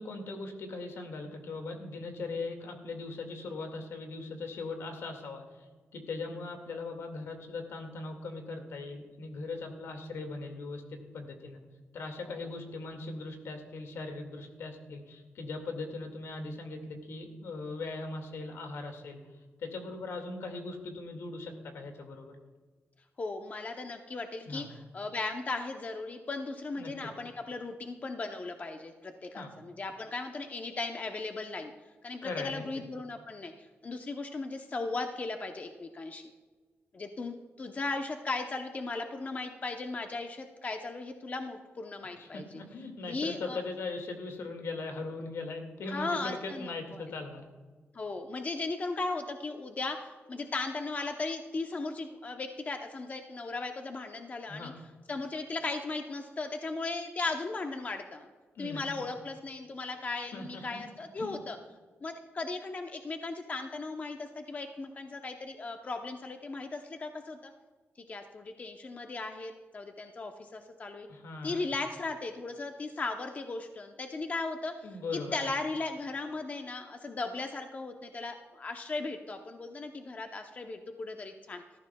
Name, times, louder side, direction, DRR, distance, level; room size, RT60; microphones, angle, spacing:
voice 1, 0.0-11.6 11.9-19.2 19.6-22.4 24.5-24.7 26.8-27.1 29.3-29.5 32.2-32.8 42.2-47.5 54.5-54.8 58.6-58.8 60.2-60.8 61.2-61.4 71.1-71.7 74.8-75.5, left 3 dB, 80° left, 4 dB, 2.1 m, -40 dB
voice 2, 23.2-31.7 32.0-36.3 36.9-42.6 43.0-43.6 45.9-47.1 47.9-54.7 55.1-58.3 58.6-61.6 62.0-67.5 68.1-71.1 71.4-74.9 75.1-81.6, left 3 dB, 35° left, 5 dB, 0.8 m, -37 dB
17.5 x 14.0 x 2.3 m, 1.4 s
cardioid pair, 105°, 4 cm